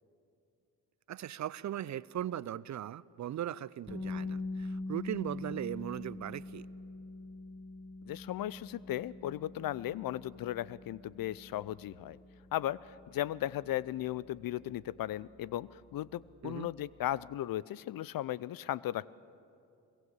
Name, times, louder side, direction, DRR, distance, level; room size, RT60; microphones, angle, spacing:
voice 1, 1.1-6.7 16.4-16.7, right 11 dB, 40° right, 21 dB, 0.6 m, -38 dB
sound 1, 3.9-15.7, left 2 dB, 5° left, 4.0 m, -44 dB
voice 2, 8.0-12.2 12.5-19.0, left 13 dB, 55° left, 21 dB, 0.6 m, -36 dB
23.5 x 22.0 x 8.2 m, 2.5 s
hypercardioid pair, 50°, 43 cm